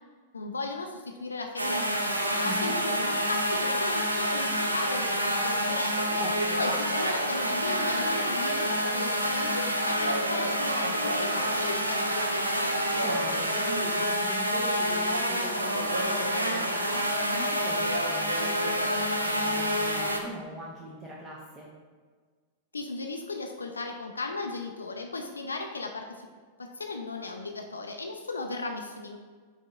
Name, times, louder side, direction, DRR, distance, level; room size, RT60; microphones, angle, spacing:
voice 1, 0.3-6.2 6.6-6.7 7.0-12.7 22.7-26.3 26.6-29.2, left 3 dB, 75° left, 3 dB, 0.3 m, -36 dB
sound 1, 1.6-20.2, equal, 85° right, 0.4 m, -28 dB
voice 2, 2.4-2.8 6.2-6.7 13.0-21.7, right 1 dB, 15° right, -5 dB, 0.7 m, -41 dB
5.1 x 2.7 x 3.6 m, 1.5 s
figure-of-eight pair, 95°, 0 cm